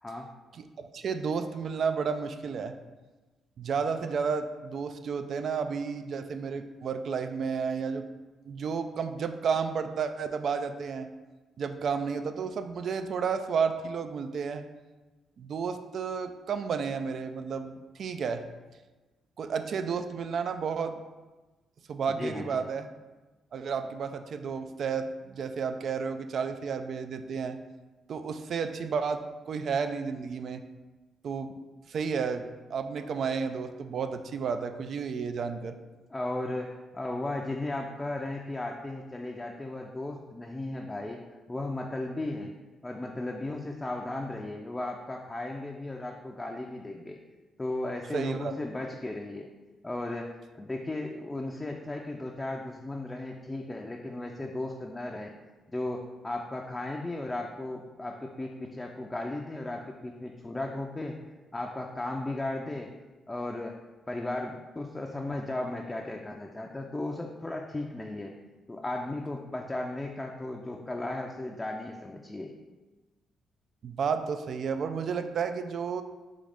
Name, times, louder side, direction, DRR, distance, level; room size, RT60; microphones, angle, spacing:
voice 1, 0.6-2.7 3.6-8.0 8.4-11.1 11.6-14.6 15.4-18.4 19.4-21.0 21.9-22.9 23.5-27.6 28.1-30.6 31.2-31.5 31.9-35.8 48.1-48.5 73.8-76.0, right 6 dB, 65° right, 8 dB, 0.3 m, -32 dB
voice 2, 22.2-22.6 36.1-41.2 41.5-42.5 42.8-47.2 47.6-49.5 49.8-50.3 50.6-55.3 55.7-61.2 61.5-62.9 63.3-63.8 64.1-68.3 68.7-72.5, left 2 dB, 20° left, 1 dB, 0.4 m, -35 dB
3.8 x 3.1 x 3.4 m, 1.2 s
supercardioid pair, 55°, 0 cm